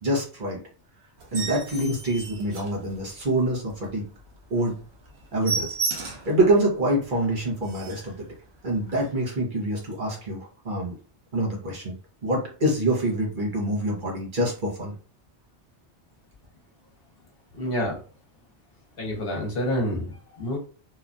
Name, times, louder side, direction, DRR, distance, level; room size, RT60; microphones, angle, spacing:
voice 1, 0.0-0.6 1.3-4.0 4.5-4.8 5.3-8.3 8.6-10.9 11.3-12.0 12.2-14.9, right 1 dB, 50° right, -2 dB, 1.0 m, -26 dB
sound 1, 1.2-3.3 3.8-3.9 4.3-4.4 4.7-4.8 5.1-6.4 6.9-7.0 7.3-7.4 7.6-8.1 8.9-9.1, right 4 dB, 75° right, 1.0 m, -33 dB
voice 2, 17.5-18.0 19.0-20.6, left 1 dB, 60° left, 0 dB, 1.1 m, -28 dB
3.0 x 2.2 x 2.5 m, 0.38 s
omnidirectional pair, 1.1 m